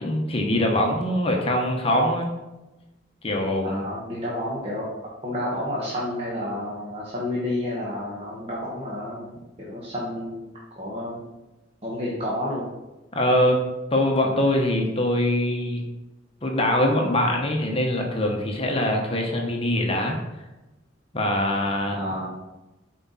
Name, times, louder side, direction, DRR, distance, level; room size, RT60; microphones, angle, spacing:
voice 1, 0.0-2.3 3.2-3.8 13.1-13.6 13.9-15.8 16.4-20.2 21.1-22.0, left 1 dB, 30° left, 1 dB, 0.9 m, -23 dB
voice 2, 3.6-4.9 5.2-10.4 10.8-11.2 11.8-12.7 21.9-22.4, left 1 dB, 30° right, -6 dB, 1.3 m, -30 dB
7.7 x 4.6 x 4.1 m, 1.1 s
head